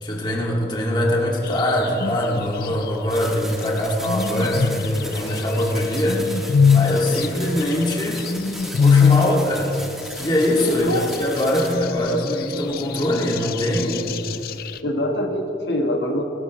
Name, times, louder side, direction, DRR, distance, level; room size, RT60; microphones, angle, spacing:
voice 1, 0.0-6.2 6.7-8.2 8.7-9.7 10.2-14.1, left 1 dB, 25° left, -3 dB, 2.0 m, -22 dB
sound 1, 1.4-2.9 3.9-5.6 6.0-9.4 9.7-9.8 10.4-14.8, left 6 dB, 55° left, 0.4 m, -22 dB
sound 2, 3.1-11.7, equal, ahead, 1.3 m, -37 dB
voice 2, 10.6-11.1 14.8-16.2, left 1 dB, 80° left, 2 dB, 1.2 m, -24 dB
22.0 x 13.0 x 3.1 m, 3.0 s
head